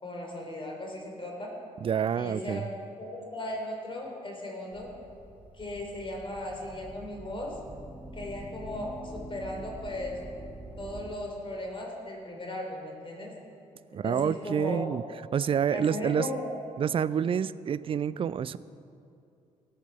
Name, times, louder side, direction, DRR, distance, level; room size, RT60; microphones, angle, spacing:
voice 1, 0.0-1.5 2.1-2.7 3.0-4.9 5.5-7.5 8.1-10.1 10.8-13.3 14.0-14.9 15.7-16.5, left 1 dB, 30° left, 0 dB, 3.4 m, -37 dB
voice 2, 1.8-2.7 13.9-15.0 15.3-16.3 16.8-18.6, right 8 dB, 30° right, 17 dB, 0.4 m, -28 dB
sound 1, 4.7-11.2, right 1 dB, 5° right, 1.4 m, -45 dB
17.5 x 7.2 x 5.7 m, 2.6 s
figure-of-eight pair, 40°, 17 cm